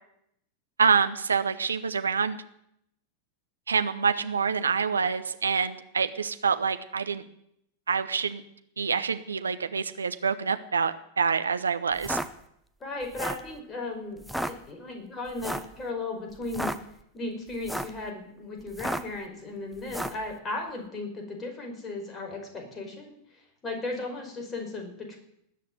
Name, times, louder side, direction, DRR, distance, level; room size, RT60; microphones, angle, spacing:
voice 1, 0.8-2.4 3.7-7.2 7.9-8.4 8.8-12.2, right 6 dB, 75° right, 11 dB, 1.0 m, -26 dB
sound 1, 11.9-12.3 13.0-13.5 14.2-14.5 15.4-15.7 16.4-16.8 17.5-18.0 18.7-19.2 19.9-20.2, equal, ahead, 0.9 m, -32 dB
voice 2, 12.8-16.7 17.1-25.2, left 2 dB, 20° left, 2 dB, 5.0 m, -36 dB
19.5 x 6.9 x 9.5 m, 0.76 s
figure-of-eight pair, 90°, 0 cm